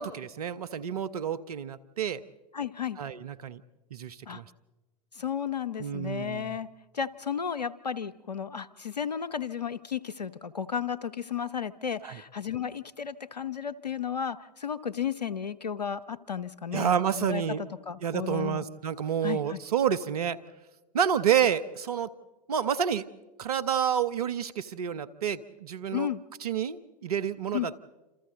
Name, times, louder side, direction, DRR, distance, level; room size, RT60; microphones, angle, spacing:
voice 1, 0.0-2.2 3.0-3.6 3.9-4.4 5.8-6.6 12.0-12.2 16.7-17.6 18.0-20.4 20.9-22.1 22.5-23.0 23.4-26.1 26.4-27.8, right 8 dB, 70° right, 14 dB, 1.0 m, -29 dB
voice 2, 2.5-3.0 4.3-4.4 5.1-6.7 6.9-18.7 19.2-19.6 25.9-26.2 27.5-27.7, left 8 dB, 85° left, 18 dB, 0.8 m, -33 dB
28.5 x 27.5 x 3.9 m, 1.1 s
figure-of-eight pair, 95°, 20 cm